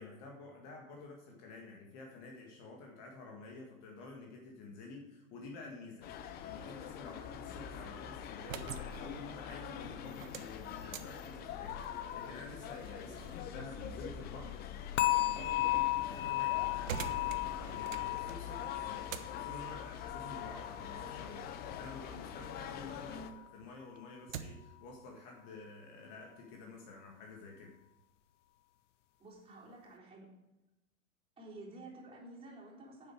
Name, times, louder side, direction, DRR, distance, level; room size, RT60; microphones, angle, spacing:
voice 1, 0.0-23.2 23.5-27.8, left 3 dB, 40° left, 0 dB, 2.0 m, -50 dB
sound 1, 6.0-23.3, left 8 dB, 25° left, 0.7 m, -44 dB
sound 2, 8.3-23.0 23.4-24.8, right 8 dB, 65° right, 1.0 m, -49 dB
sound 3, 15.0-22.0 22.3-22.7 23.2-23.3, left 18 dB, 55° left, 0.8 m, -35 dB
voice 2, 29.2-30.3 31.4-33.1, right 1 dB, 15° right, -5 dB, 3.7 m, -51 dB
9.8 x 7.3 x 4.8 m, 1.0 s
figure-of-eight pair, 105°, 42 cm